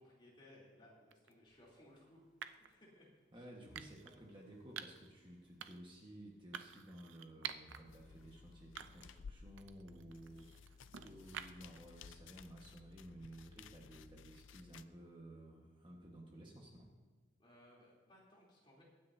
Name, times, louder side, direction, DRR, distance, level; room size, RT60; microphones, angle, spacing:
voice 1, 0.0-3.1 3.3-3.4 17.4-18.8, left 1 dB, 25° left, -5 dB, 3.3 m, -63 dB
sound 1, 1.1-1.3 2.4-2.7 3.7-4.2 4.8-5.1 5.6-5.9 6.5-7.8 8.2-8.3 8.8-9.2 9.6-11.8, right 8 dB, 85° right, 0.6 m, -49 dB
sound 2, 1.4-3.3 3.7-7.4 7.7-8.6, equal, 5° right, 1.6 m, -70 dB
voice 2, 3.3-16.9, right 1 dB, 25° right, -1 dB, 1.5 m, -55 dB
sound 3, 7.9-14.8, left 5 dB, 90° left, 0.5 m, -57 dB
23.0 x 9.5 x 2.8 m, 1.4 s
head